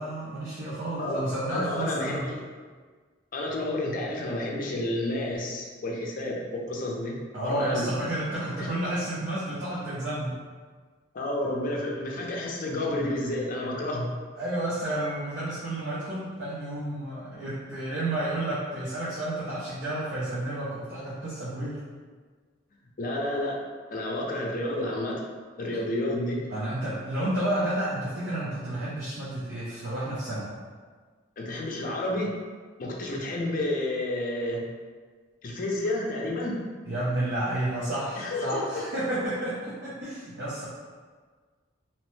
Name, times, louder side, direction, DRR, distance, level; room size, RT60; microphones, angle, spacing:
voice 1, 0.0-2.3 7.3-10.4 14.4-21.8 26.5-30.5 36.8-40.7, right 1 dB, 60° right, -10 dB, 0.7 m, -31 dB
voice 2, 1.5-2.4 3.3-7.2 7.4-7.9 8.6-8.7 11.1-14.1 23.0-23.6 23.9-25.2 25.6-26.4 31.4-32.3 32.8-34.6 35.4-36.6 38.2-38.8, left 1 dB, 45° left, -1 dB, 0.5 m, -30 dB
2.9 x 2.1 x 3.1 m, 1.5 s
head